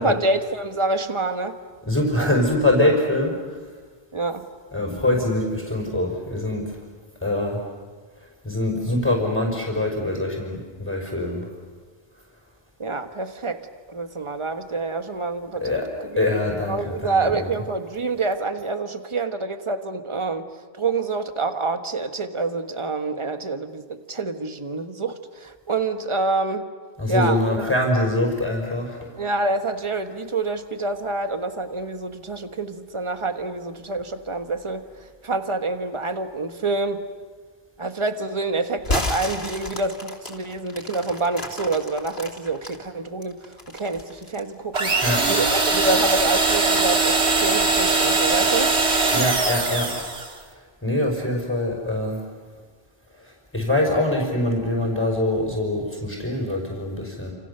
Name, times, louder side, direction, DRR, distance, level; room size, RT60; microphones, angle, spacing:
voice 1, 0.0-1.6 2.1-2.4 4.1-4.5 12.8-13.6 13.9-15.8 16.7-20.5 20.7-26.7 27.1-27.7 29.1-34.8 35.2-37.1 37.8-43.4 43.7-44.9 45.2-48.7, right 3 dB, 30° right, 7 dB, 1.5 m, -27 dB
voice 2, 1.9-3.4 4.7-6.6 7.2-7.6 8.4-11.5 15.6-15.9 16.2-17.5 27.0-29.0 45.0-45.3 49.1-50.0 50.8-52.2 53.5-57.3, left 1 dB, 10° left, 0 dB, 5.2 m, -23 dB
sound 1, 38.8-42.8 43.2-44.5, left 2 dB, 70° left, 3.2 m, -31 dB
sound 2, 44.7-50.4, right 3 dB, 85° right, 2.7 m, -21 dB
29.5 x 28.0 x 6.9 m, 1.5 s
omnidirectional pair, 1.1 m